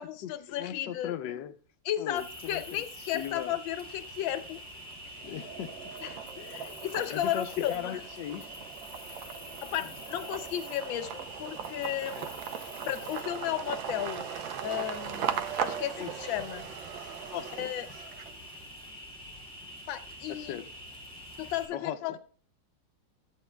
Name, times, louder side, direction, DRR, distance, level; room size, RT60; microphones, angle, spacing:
voice 1, 0.0-1.1 1.8-4.6 5.1-5.4 6.0-8.0 9.6-12.4 12.8-14.3 14.6-16.7 17.6-17.9 19.9-20.6 21.4-22.2, left 12 dB, 85° left, 1.4 m, -34 dB
voice 2, 0.6-1.5 2.0-3.5 5.2-5.9 7.1-8.5 9.8-9.9 12.1-12.3 16.0-16.3 17.3-17.7 20.3-20.7 21.7-22.2, left 10 dB, 70° left, 1.3 m, -38 dB
Cricket, 2.2-21.7, equal, 5° left, 2.1 m, -46 dB
sound 1, 4.0-4.7 5.1-18.6, right 9 dB, 80° right, 1.4 m, -39 dB
14.0 x 8.5 x 2.2 m
omnidirectional pair, 2.1 m